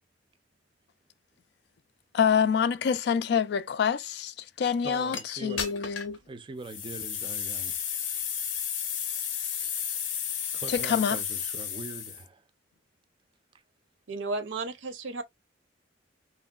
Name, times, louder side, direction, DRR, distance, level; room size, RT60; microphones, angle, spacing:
voice 1, 2.1-6.2 10.7-11.2, left 7 dB, 60° left, 0.3 m, -26 dB
voice 2, 4.8-5.7 6.3-7.7 10.5-12.4, right 3 dB, 25° right, 0.4 m, -42 dB
sound 1, 5.1-5.2 5.6-6.2 6.6-12.2, left 8 dB, 90° left, 0.7 m, -33 dB
voice 3, 14.1-15.2, right 3 dB, 80° right, 0.6 m, -33 dB
3.0 x 2.6 x 2.2 m
head